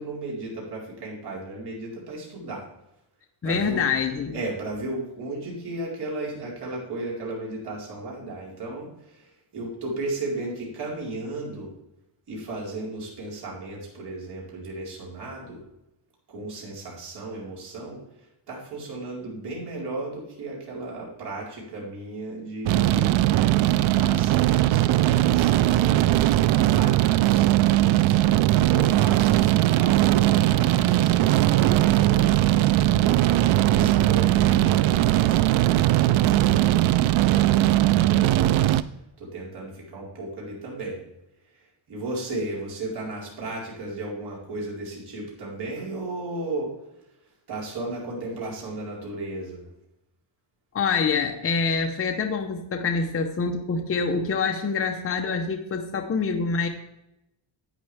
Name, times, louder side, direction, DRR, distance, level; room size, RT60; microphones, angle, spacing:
voice 1, 0.0-2.7 3.4-3.8 4.3-11.7 12.3-15.6 16.3-26.3 26.7-33.2 33.7-38.8 39.2-41.0 41.5-46.7 47.5-49.6, right 2 dB, 50° right, -4 dB, 4.4 m, -35 dB
voice 2, 3.4-4.4 50.7-56.7, left 5 dB, 25° left, 4 dB, 0.9 m, -26 dB
sound 1, 22.7-38.8, right 14 dB, 70° right, 0.6 m, -19 dB
11.0 x 9.1 x 3.4 m, 0.88 s
cardioid pair, 140°, 48 cm